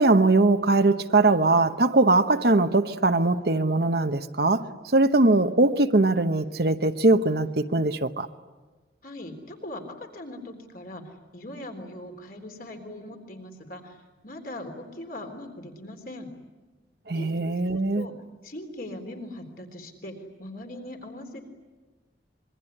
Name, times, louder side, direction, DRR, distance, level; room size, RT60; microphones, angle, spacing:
voice 1, 0.0-8.3 17.1-18.1, right 2 dB, 60° right, 1.0 m, -21 dB
voice 2, 9.0-14.0 14.2-16.3 17.1-17.3 17.6-18.1 18.4-21.4, left 1 dB, 50° left, 3.7 m, -40 dB
26.0 x 23.0 x 10.0 m
head